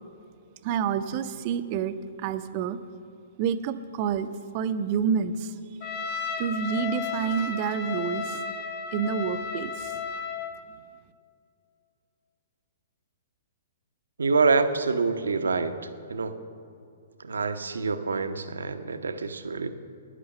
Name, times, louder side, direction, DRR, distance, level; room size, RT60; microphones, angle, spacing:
voice 1, 0.6-2.8 3.4-4.3 4.5-5.5 6.4-8.4 8.9-10.0, right 7 dB, 40° right, 11 dB, 0.6 m, -28 dB
Trumpet, 5.8-10.5, left 6 dB, 40° left, 1.2 m, -33 dB
voice 2, 14.2-15.7 16.1-16.4 17.2-19.7, right 4 dB, 75° right, 10 dB, 0.8 m, -26 dB
11.0 x 10.0 x 6.7 m, 2.4 s
figure-of-eight pair, 120°, 0 cm